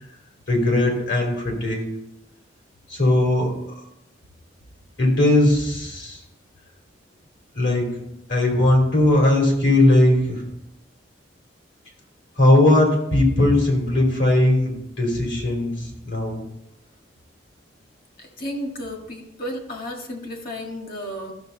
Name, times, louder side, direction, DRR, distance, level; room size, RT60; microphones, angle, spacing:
voice 1, 0.5-1.9 2.9-3.8 5.0-6.2 7.5-8.0 8.3-10.4 12.4-16.4, left 1 dB, 70° left, 0 dB, 3.2 m, -19 dB
voice 2, 18.2-21.3, equal, 50° left, 2 dB, 1.8 m, -33 dB
13.5 x 6.7 x 4.0 m, 0.83 s
head